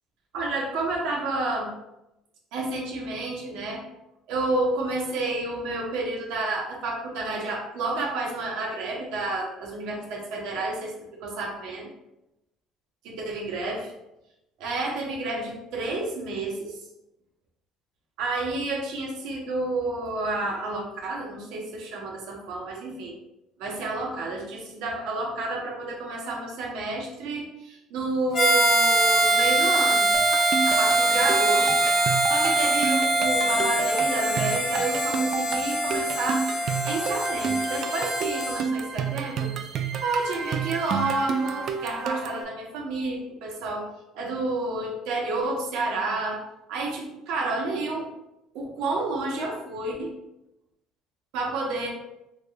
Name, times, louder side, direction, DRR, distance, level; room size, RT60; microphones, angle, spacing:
voice 1, 0.3-1.7 2.5-3.8 4.3-10.9 11.2-11.9 13.0-13.9 14.6-16.8 18.2-23.1 23.6-30.1 30.6-36.5 36.8-43.9 44.1-46.4 46.7-48.1 48.5-50.1 51.3-51.9, right 2 dB, 80° right, -1 dB, 0.9 m, -30 dB
Harmonica, 28.3-38.6, right 1 dB, 45° left, 0.8 m, -23 dB
sound 1, 30.1-42.4, right 6 dB, 55° right, 0.3 m, -30 dB
3.5 x 3.1 x 2.3 m, 0.88 s
supercardioid pair, 90°, 0 cm